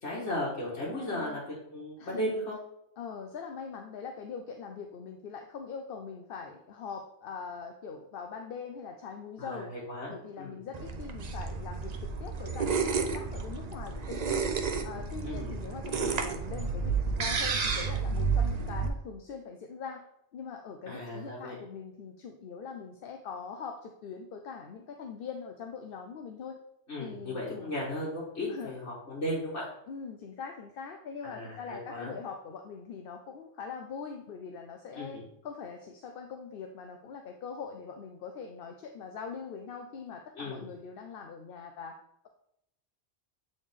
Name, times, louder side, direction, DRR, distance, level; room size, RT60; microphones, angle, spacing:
voice 1, 0.0-1.4 1.7-2.6 9.4-10.6 15.2-15.6 20.9-21.6 26.9-29.7 31.2-32.2 35.0-35.2 40.4-40.7, left 1 dB, 90° left, -7 dB, 2.0 m, -36 dB
voice 2, 1.0-1.4 2.0-2.3 3.0-9.7 10.1-14.5 14.8-20.0 20.3-26.6 27.0-27.7 28.5-28.7 29.9-41.9, left 6 dB, 60° left, 4 dB, 0.7 m, -42 dB
sound 1, 10.7-18.9, right 5 dB, 45° right, 0.6 m, -31 dB
8.7 x 3.4 x 3.6 m, 0.78 s
omnidirectional pair, 1.2 m